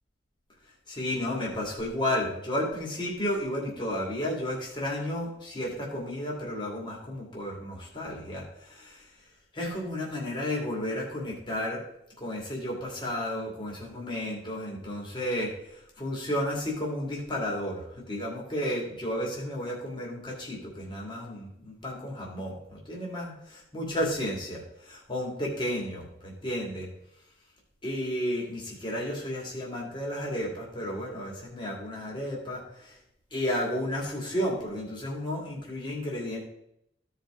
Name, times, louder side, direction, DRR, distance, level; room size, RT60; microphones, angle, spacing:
voice 1, 0.9-9.1 9.5-11.8 12.2-26.9 27.8-33.0 33.3-36.5, left 1 dB, 25° left, -3 dB, 2.5 m, -32 dB
15.5 x 5.2 x 3.8 m, 0.79 s
head